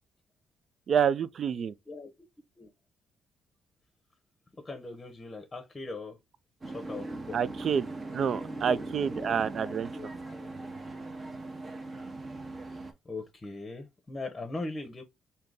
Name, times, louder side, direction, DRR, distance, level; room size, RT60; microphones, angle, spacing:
voice 1, 0.9-1.7 7.3-7.9 8.1-9.9, right 7 dB, 55° right, 0.3 m, -28 dB
voice 2, 4.5-6.2 6.7-7.4 8.3-8.8 9.2-10.7 13.0-15.0, left 2 dB, 25° left, 0.8 m, -41 dB
sound 1, 6.6-12.9, right 2 dB, 30° right, 0.9 m, -40 dB
3.7 x 2.8 x 3.6 m
cardioid pair, 90°, 0 cm